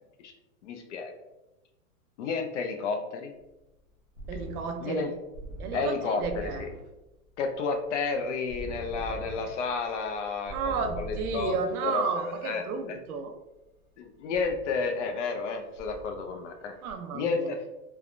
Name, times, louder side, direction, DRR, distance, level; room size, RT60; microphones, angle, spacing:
voice 1, 0.6-1.1 2.2-3.3 4.8-5.1 5.7-6.2 6.6-6.7 7.4-11.6 11.8-13.0 14.0-16.7 17.1-17.6, left 4 dB, 55° left, 5 dB, 0.5 m, -31 dB
sound 1, 3.6-12.4 14.3-15.5 15.8-16.9, right 1 dB, 30° right, 0.5 m, -43 dB
voice 2, 4.3-5.2 5.6-6.7 10.5-13.3 16.8-17.5, right 5 dB, 85° right, 6 dB, 0.6 m, -32 dB
3.3 x 2.1 x 2.3 m, 1.0 s
supercardioid pair, 165°, 43 cm